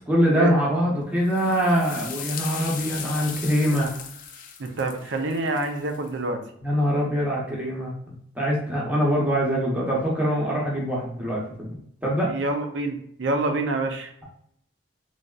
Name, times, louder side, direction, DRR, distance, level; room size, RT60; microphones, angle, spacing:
voice 1, 0.1-4.0 6.6-11.8 12.0-12.3, equal, 10° right, -4 dB, 0.7 m, -24 dB
sound 1, 1.3-6.1, left 7 dB, 45° left, 0.3 m, -38 dB
voice 2, 4.6-6.4 12.3-14.1, right 2 dB, 65° right, 5 dB, 0.5 m, -27 dB
3.3 x 2.6 x 2.3 m, 0.67 s
head